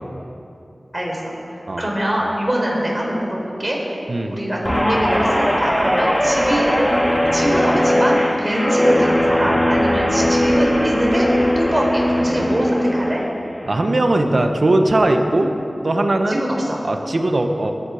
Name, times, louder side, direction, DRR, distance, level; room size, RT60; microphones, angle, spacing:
voice 1, 0.9-1.3 1.8-4.0 4.2-6.7 7.3-11.3 11.6-13.2 16.3-16.8, equal, 25° right, -3 dB, 4.5 m, -23 dB
Guitar, 4.7-13.2 13.6-14.0, equal, 10° left, 2.1 m, -19 dB
voice 2, 13.6-15.5 15.8-16.4 16.8-17.7, right 2 dB, 65° right, 5 dB, 1.3 m, -18 dB
22.0 x 9.7 x 5.1 m, 2.7 s
wide cardioid pair, 50°, 0 cm